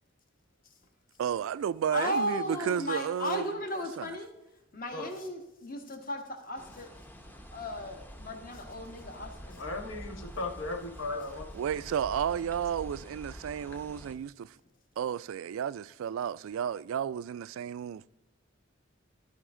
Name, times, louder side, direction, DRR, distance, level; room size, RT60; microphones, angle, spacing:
voice 1, 1.2-3.4 4.0-4.1 11.6-14.5 15.0-18.0, right 8 dB, 80° right, 0.3 m, -32 dB
voice 2, 1.9-4.3 4.7-6.9 7.5-9.6, left 1 dB, 45° left, 1.4 m, -35 dB
sound 1, 6.6-14.1, equal, 10° left, 0.6 m, -47 dB
voice 3, 9.6-11.5, left 2 dB, 80° left, 1.6 m, -36 dB
14.5 x 5.2 x 3.7 m
head